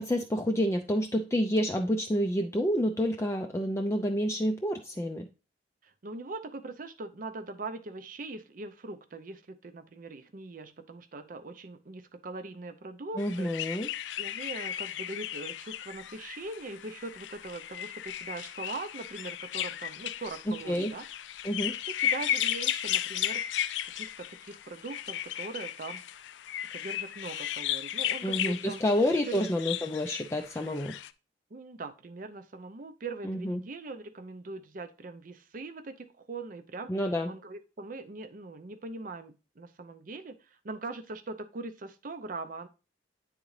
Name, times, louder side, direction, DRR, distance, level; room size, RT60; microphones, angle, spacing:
voice 1, 0.0-5.3 13.2-13.9 20.7-20.9 21.4-21.7 28.2-30.9 33.2-33.6 36.9-37.3, equal, 15° left, 3 dB, 0.4 m, -28 dB
voice 2, 5.8-13.5 14.2-21.1 21.9-23.5 23.8-26.2 26.7-28.8 29.3-29.4 31.5-42.7, right 3 dB, 50° right, 10 dB, 0.6 m, -41 dB
sound 1, 13.2-31.1, left 11 dB, 85° left, 0.3 m, -35 dB
9.4 x 3.8 x 3.2 m, 0.31 s
head